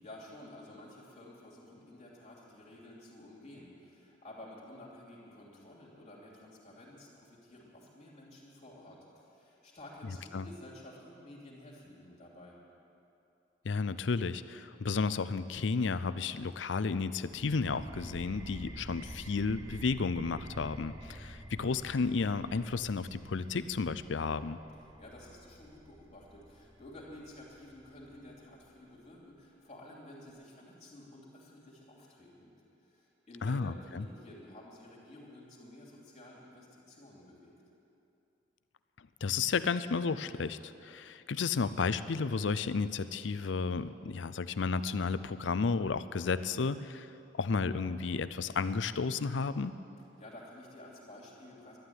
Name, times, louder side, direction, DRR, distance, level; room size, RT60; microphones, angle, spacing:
voice 1, 0.0-12.6 25.0-32.5 32.8-37.5 50.0-51.8, left 1 dB, 40° left, -4 dB, 2.8 m, -52 dB
voice 2, 10.1-10.5 13.6-24.6 33.4-34.1 39.2-47.1 47.4-49.7, left 4 dB, 70° left, 14 dB, 0.5 m, -32 dB
sound 1, 17.3-28.7, right 1 dB, 15° right, 0.8 m, -49 dB
12.0 x 11.5 x 9.5 m, 2.8 s
head